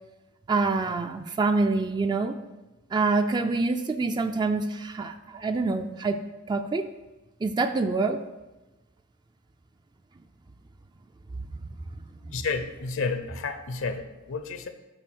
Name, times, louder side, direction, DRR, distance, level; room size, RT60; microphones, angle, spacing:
voice 1, 0.5-2.3 2.9-6.2 6.5-6.9 7.4-8.2 12.3-12.4, right 3 dB, 20° right, 7 dB, 0.3 m, -26 dB
voice 2, 12.3-14.7, left 4 dB, 70° left, 9 dB, 0.6 m, -31 dB
7.8 x 4.7 x 6.0 m, 1.1 s
head